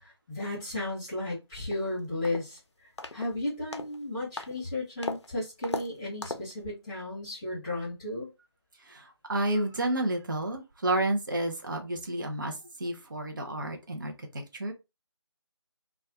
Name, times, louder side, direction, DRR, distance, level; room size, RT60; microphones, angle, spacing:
voice 1, 0.0-2.6 3.1-8.3, left 2 dB, 10° left, 0.9 m, -34 dB
sound 1, 1.7-1.8 2.2-2.6 3.0-3.3 3.7-4.0 4.4-4.6 5.0-5.3 5.6-5.9 6.2-6.5, left 3 dB, 70° left, 0.5 m, -36 dB
voice 2, 8.9-14.7, right 1 dB, 45° right, 0.7 m, -31 dB
2.4 x 2.3 x 3.4 m
figure-of-eight pair, 160°, 15 cm